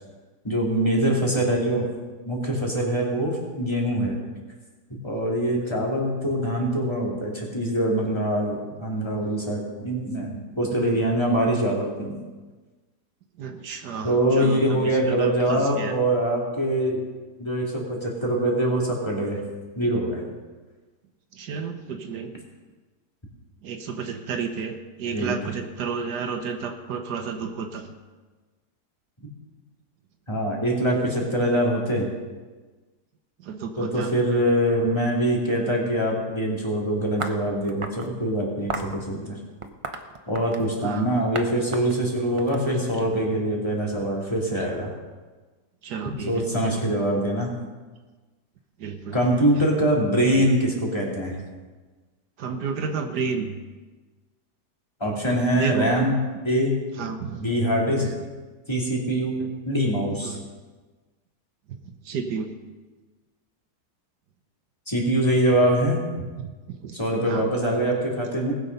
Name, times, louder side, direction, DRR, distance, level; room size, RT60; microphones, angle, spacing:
voice 1, 0.4-1.9 2.2-4.2 5.0-12.2 14.0-17.0 17.4-19.4 19.7-20.2 25.1-25.3 30.3-32.1 33.8-39.4 40.3-44.9 46.3-47.5 49.1-51.4 55.0-56.2 56.4-56.7 57.4-58.1 58.7-60.4 64.9-66.0 66.9-68.5, right 1 dB, 15° left, -3 dB, 2.7 m, -23 dB
voice 2, 13.4-16.0 21.3-22.3 23.6-27.9 33.4-34.1 40.8-41.1 44.6-44.7 45.8-46.9 48.8-49.2 49.6-49.7 52.4-53.6 55.5-55.9 57.0-57.4 58.0-58.2 59.4-59.5 60.2-60.4 61.7-62.5 66.2-67.0 67.3-67.5, right 5 dB, 85° right, 5 dB, 1.5 m, -32 dB
sound 1, 37.2-38.1 38.7-39.0 39.6-40.7 41.3-41.5 41.7-43.1, right 3 dB, 35° right, 0.5 m, -33 dB
19.5 x 7.0 x 5.4 m, 1.3 s
omnidirectional pair, 1.7 m